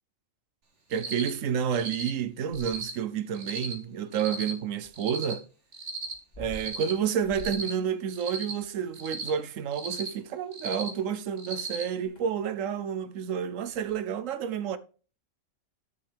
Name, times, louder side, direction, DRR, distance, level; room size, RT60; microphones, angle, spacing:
Cricket, 0.9-1.3 1.7-2.1 2.5-2.9 3.3-3.7 4.1-4.5 4.9-5.3 5.7-6.1 6.5-6.9 7.3-7.7 8.1-8.5 8.9-9.3 9.7-10.1 10.5-10.9 11.4-11.8, right 3 dB, 65° right, 2.1 m, -36 dB
voice 1, 0.9-5.4 6.4-14.8, right 8 dB, 80° right, 1.1 m, -30 dB
sound 1, 2.2-3.1 4.8-11.7 12.0-12.4 13.7-14.0, left 2 dB, 35° left, 2.5 m, -49 dB
12.0 x 6.4 x 3.5 m
omnidirectional pair, 1.3 m